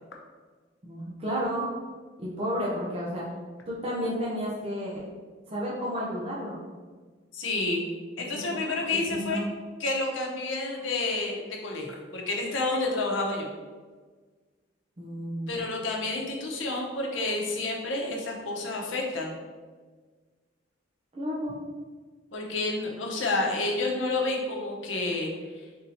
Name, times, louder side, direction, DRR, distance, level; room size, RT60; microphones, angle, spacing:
voice 1, 0.8-1.7 2.2-3.3 3.7-5.1 5.5-6.6 8.3-8.9 9.2-9.5 15.0-15.5 21.1-21.6, equal, 30° right, -6 dB, 0.6 m, -32 dB
voice 2, 7.3-7.8 8.2-9.4 9.8-13.5 15.5-19.3 22.3-25.3, left 2 dB, 85° left, -1 dB, 0.8 m, -29 dB
3.6 x 2.7 x 4.2 m, 1.4 s
head